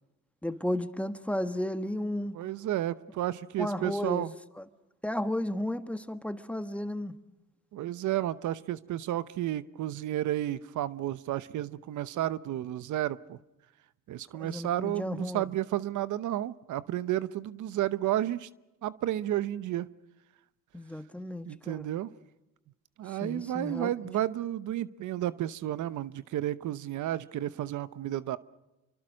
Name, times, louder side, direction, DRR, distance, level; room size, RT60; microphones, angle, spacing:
voice 1, 0.4-2.4 3.6-4.2 4.6-4.7 5.0-7.1 14.4-15.4 20.7-21.9 23.2-23.9, left 1 dB, 5° left, 1.5 m, -33 dB
voice 2, 2.3-4.3 7.7-13.4 14.1-18.5 18.8-19.9 21.5-22.1 23.0-28.4, right 13 dB, 75° right, 0.9 m, -32 dB
27.5 x 24.5 x 6.4 m
cardioid pair, 90°, 30 cm